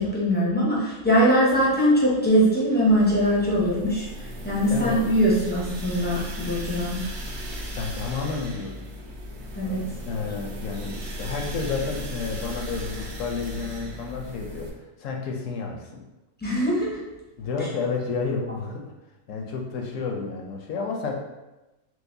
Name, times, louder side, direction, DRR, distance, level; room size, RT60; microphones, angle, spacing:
voice 1, 0.0-4.1 4.4-7.0 9.5-9.8 16.4-17.0, equal, 15° left, -7 dB, 0.4 m, -21 dB
sound 1, 2.8-14.7, equal, 65° right, 0.7 m, -36 dB
voice 2, 4.7-5.0 7.8-8.7 9.6-14.7 15.0-16.0 17.4-18.8 19.3-21.1, left 4 dB, 70° left, 1 dB, 0.9 m, -31 dB
4.6 x 2.0 x 2.6 m, 1.0 s
omnidirectional pair, 1.5 m